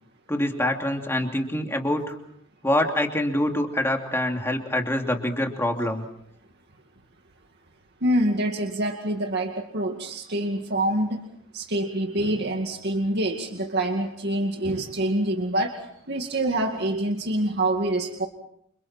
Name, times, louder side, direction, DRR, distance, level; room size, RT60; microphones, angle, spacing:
voice 1, 0.3-2.2 2.6-6.0, left 1 dB, 10° left, 3 dB, 2.7 m, -25 dB
voice 2, 8.0-11.2 11.5-15.7 16.1-18.3, right 1 dB, 55° right, 3 dB, 2.3 m, -26 dB
30.0 x 27.0 x 4.4 m, 0.68 s
head